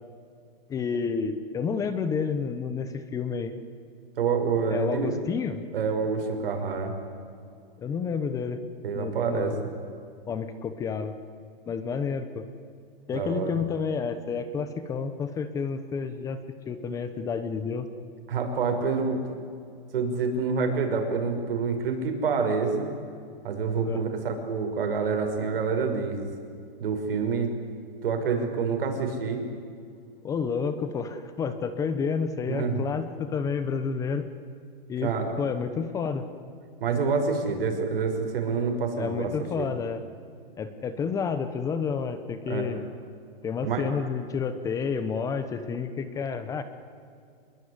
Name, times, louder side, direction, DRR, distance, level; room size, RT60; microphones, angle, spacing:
voice 1, 0.7-3.6 4.7-5.6 7.8-8.6 8.9-9.7 10.3-11.1 11.7-12.5 13.1-16.4 16.7-17.9 23.8-24.0 30.2-34.3 34.9-35.1 35.4-36.3 39.0-40.0 40.6-42.8 43.4-46.6, left 6 dB, 10° left, 11 dB, 0.9 m, -30 dB
voice 2, 4.2-5.2 5.7-6.9 8.8-9.6 13.1-13.6 18.3-19.2 19.9-22.9 23.4-26.3 26.8-27.5 28.0-29.4 32.5-32.8 35.0-35.3 36.8-39.7 42.5-42.7 43.6-43.9, right 5 dB, 70° right, 5 dB, 6.1 m, -27 dB
27.0 x 21.5 x 9.8 m, 2.3 s
hypercardioid pair, 165°, 30 cm